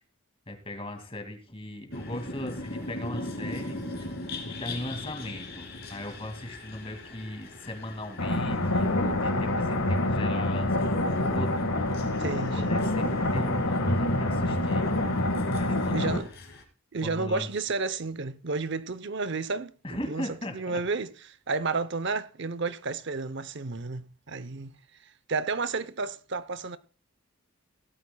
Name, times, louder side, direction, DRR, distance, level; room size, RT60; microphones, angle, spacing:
voice 1, 0.5-3.8 4.6-11.9 12.5-14.8 15.5-16.3 17.0-17.5 19.8-20.8, left 1 dB, 25° left, 2.3 m, -38 dB
sound 1, 1.9-16.6, left 2 dB, 50° left, 2.5 m, -41 dB
sound 2, 8.2-16.2, left 1 dB, 80° left, 1.7 m, -26 dB
voice 2, 12.2-12.8 15.9-16.3 16.9-20.3 20.5-24.8 25.3-26.8, right 3 dB, 55° right, 0.7 m, -31 dB
17.0 x 12.5 x 2.3 m
head